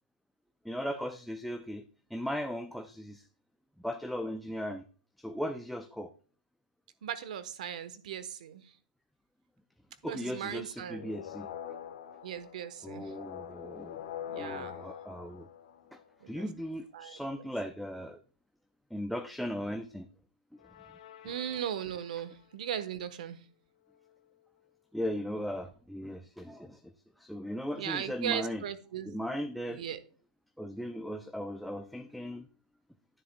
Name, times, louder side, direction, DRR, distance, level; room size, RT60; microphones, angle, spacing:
voice 1, 0.6-1.8 2.1-3.3 3.8-4.8 5.2-6.1 10.0-11.5 12.8-14.1 14.3-15.5 15.9-16.0 16.3-18.2 18.9-20.1 21.2-21.3 24.9-26.9 27.2-28.6 29.0-29.8 30.6-32.5, equal, ahead, 7 dB, 0.4 m, -37 dB
voice 2, 7.0-8.6 10.0-11.1 12.2-13.1 14.3-14.9 16.2-16.5 16.9-17.2 21.2-23.4 27.8-29.1 29.7-30.0, right 9 dB, 60° right, 13 dB, 1.1 m, -38 dB
sound 1, 11.0-16.3 20.6-22.3, left 9 dB, 55° left, 1.1 m, -45 dB
11.0 x 9.8 x 2.2 m, 0.40 s
hypercardioid pair, 135°, 5 cm